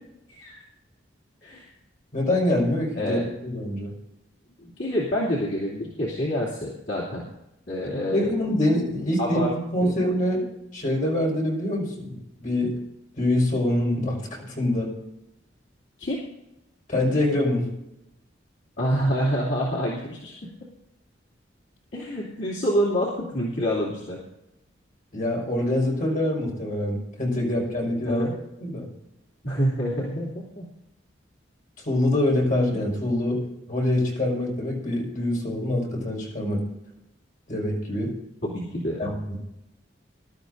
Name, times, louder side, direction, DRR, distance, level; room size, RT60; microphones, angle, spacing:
voice 1, 2.1-3.9 8.1-12.7 13.2-14.9 16.9-17.7 25.1-28.3 28.6-28.9 31.9-33.4 33.7-36.6 37.5-38.1 39.0-39.2, left 1 dB, 45° left, -3 dB, 5.4 m, -25 dB
voice 2, 4.6-7.3 7.7-8.2 9.2-9.5 9.8-9.9 16.0-16.2 18.8-20.3 21.9-24.2 27.4-27.6 28.0-28.3 29.4-30.6 38.4-39.0, equal, 60° left, -6 dB, 2.7 m, -27 dB
21.5 x 12.5 x 2.7 m, 0.90 s
head